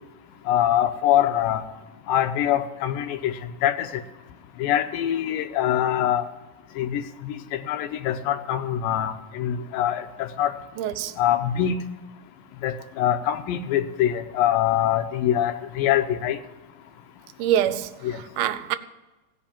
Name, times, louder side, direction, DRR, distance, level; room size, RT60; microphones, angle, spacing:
voice 1, 0.5-1.6 2.1-3.4 3.6-4.0 4.6-6.3 6.8-10.5 11.2-11.8 12.6-16.4 18.0-18.2, left 11 dB, 80° left, 2.3 m, -24 dB
voice 2, 10.8-11.1 17.4-17.9 18.4-18.8, right 11 dB, 85° right, 2.5 m, -24 dB
16.5 x 5.6 x 8.5 m
omnidirectional pair, 4.2 m